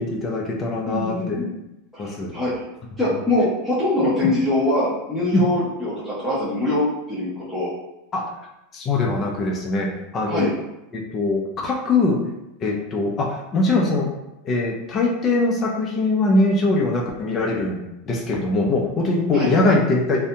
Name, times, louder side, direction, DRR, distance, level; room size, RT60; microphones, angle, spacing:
voice 1, 0.0-1.4 2.0-2.3 5.3-5.4 8.1-8.2 8.7-10.5 10.9-12.2 12.6-14.1 14.4-20.2, left 2 dB, 30° left, -1 dB, 0.5 m, -22 dB
voice 2, 0.9-1.6 1.9-2.5 3.0-7.7 10.3-10.5 19.3-19.5, left 2 dB, ahead, -12 dB, 0.8 m, -23 dB
2.7 x 2.6 x 2.2 m, 0.92 s
supercardioid pair, 130°, 0 cm